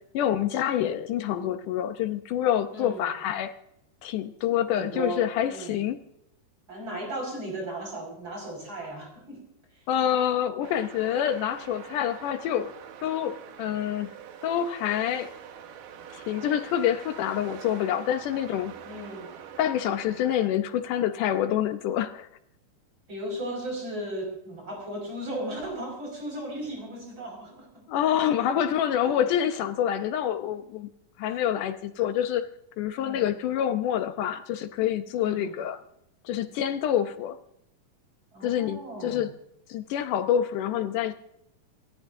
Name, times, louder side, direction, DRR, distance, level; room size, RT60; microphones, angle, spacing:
voice 1, 0.1-3.5 4.0-6.0 9.9-12.7 13.0-14.1 14.4-15.3 16.1-18.7 19.6-22.3 27.9-30.9 31.2-32.5 32.8-35.8 36.2-37.4 38.4-39.3 39.7-41.1, left 10 dB, 75° left, 8 dB, 2.3 m, -27 dB
voice 2, 2.7-3.1 4.7-5.8 6.7-9.4 9.7-9.9 18.8-19.3 23.1-28.7 29.0-29.2 31.2-31.4 32.9-33.3 35.1-35.5 38.3-39.2, right 1 dB, 35° right, 2 dB, 6.2 m, -36 dB
sound 1, 10.6-20.5, right 8 dB, 80° right, 2.9 m, -45 dB
28.5 x 13.0 x 2.7 m, 0.77 s
omnidirectional pair, 3.8 m